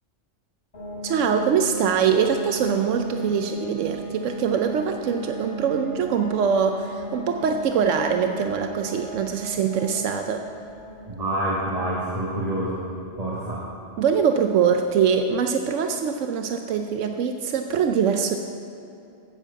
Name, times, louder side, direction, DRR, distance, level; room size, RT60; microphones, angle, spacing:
sound 1, 0.7-15.3, right 2 dB, 35° left, 2.0 m, -38 dB
voice 1, 1.0-10.4 14.0-18.4, right 6 dB, 85° right, 5 dB, 1.0 m, -23 dB
voice 2, 11.1-12.8 13.2-13.6, right 1 dB, 30° right, -5 dB, 1.5 m, -27 dB
9.2 x 7.4 x 8.0 m, 2.7 s
omnidirectional pair, 1.2 m